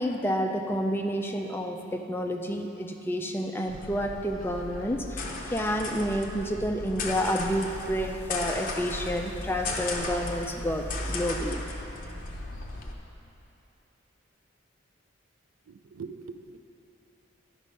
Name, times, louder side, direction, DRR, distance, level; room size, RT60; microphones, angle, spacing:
voice 1, 0.0-11.6, equal, 10° left, 3 dB, 0.4 m, -30 dB
sound 1, 3.7-12.9, left 2 dB, 40° left, 0.7 m, -36 dB
voice 2, 15.7-16.6, right 5 dB, 85° right, 8 dB, 0.4 m, -42 dB
11.0 x 5.4 x 5.1 m, 2.8 s
head